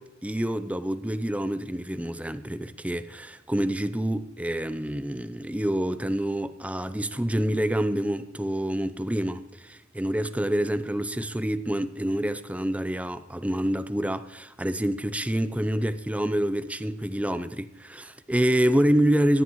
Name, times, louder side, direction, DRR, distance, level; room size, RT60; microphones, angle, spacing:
voice 1, 0.0-19.4, right 1 dB, 5° right, 0.5 m, -27 dB
18.5 x 10.5 x 3.1 m
head